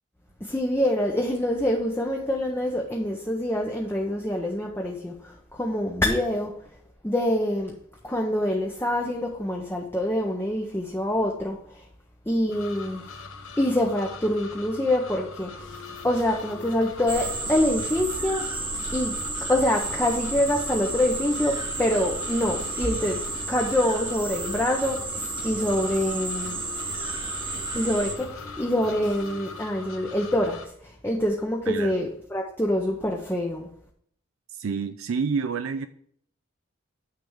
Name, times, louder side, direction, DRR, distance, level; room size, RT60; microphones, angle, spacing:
voice 1, 0.4-6.5 7.0-7.7 8.0-11.9 12.3-13.1 13.6-15.7 16.0-18.5 18.9-19.1 19.5-23.2 23.5-26.6 27.7-33.7, left 1 dB, 10° left, 0 dB, 0.7 m, -26 dB
sound 1, 12.5-30.7, left 3 dB, 75° left, 0.9 m, -42 dB
sound 2, 15.6-29.6, left 2 dB, 55° left, 1.5 m, -45 dB
sound 3, 17.1-28.1, right 3 dB, 25° right, 1.0 m, -32 dB
voice 2, 34.5-35.9, right 5 dB, 75° right, 9 dB, 0.4 m, -28 dB
9.4 x 3.4 x 6.3 m, 0.66 s
head